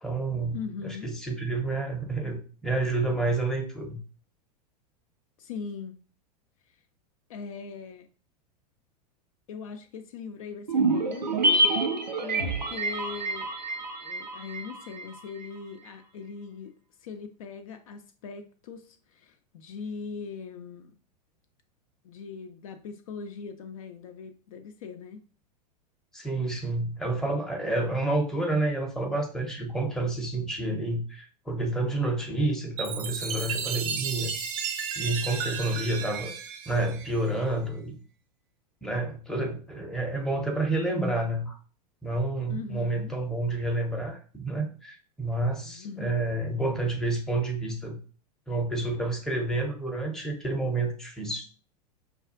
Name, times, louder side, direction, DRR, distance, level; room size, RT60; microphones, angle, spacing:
voice 1, 0.0-0.6 0.8-4.0 26.1-34.3 35.0-36.3 36.7-38.0 38.8-41.5 42.0-48.0 48.5-51.5, right 2 dB, ahead, 0.7 m, -29 dB
voice 2, 0.5-1.1 5.4-6.0 7.3-8.1 9.5-11.4 11.7-11.8 12.2-13.5 14.0-20.9 22.0-25.2 27.8-28.0 42.5-43.1 45.7-46.1, left 5 dB, 55° left, 0.4 m, -40 dB
sound 1, 10.7-15.2 15.4-15.5, right 2 dB, 85° right, 0.5 m, -27 dB
Chime, 32.8-37.5, right 7 dB, 40° right, 0.5 m, -33 dB
5.3 x 2.3 x 2.4 m
figure-of-eight pair, 90°, 21 cm